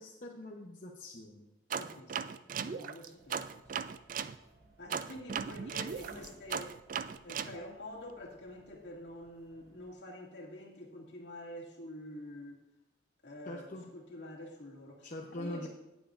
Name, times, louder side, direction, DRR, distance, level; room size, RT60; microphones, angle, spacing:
voice 1, 0.0-1.5 4.9-5.1 13.5-13.9 15.0-15.7, left 1 dB, 45° left, -1 dB, 0.8 m, -43 dB
voice 2, 1.7-3.8 4.8-6.8 7.2-12.6 13.2-15.7, left 1 dB, 65° left, -2 dB, 2.2 m, -47 dB
sound 1, 1.7-4.3 4.9-7.5, right 7 dB, 45° right, 0.4 m, -37 dB
sound 2, 3.2-9.9, right 2 dB, 85° right, 2.4 m, -60 dB
17.5 x 7.1 x 2.5 m, 1.0 s
head